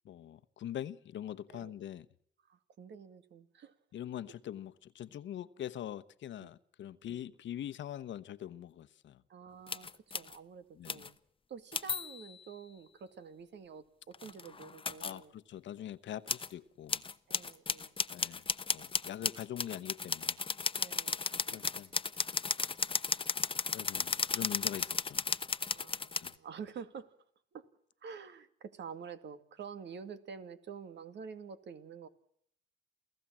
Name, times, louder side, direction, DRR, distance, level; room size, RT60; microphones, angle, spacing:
voice 1, 0.0-2.0 3.9-9.2 10.8-11.0 15.0-17.0 18.1-18.4 18.7-20.4 21.5-21.9 23.7-25.2 26.2-26.3, left 11 dB, 70° left, 1.1 m, -43 dB
voice 2, 2.5-3.7 6.4-6.5 7.1-7.2 9.3-9.9 10.1-11.2 11.5-15.3 17.3-18.0 20.8-21.2 21.5-21.6 25.7-27.1 27.5-27.6 28.0-32.1, right 6 dB, 65° right, 2.3 m, -48 dB
sound 1, 9.7-10.4 10.8-11.1 11.7-12.4 14.1-15.2 16.3-16.5 16.9-26.3, left 5 dB, 25° left, 0.9 m, -35 dB
28.5 x 16.0 x 7.5 m
cardioid pair, 90°, 20 cm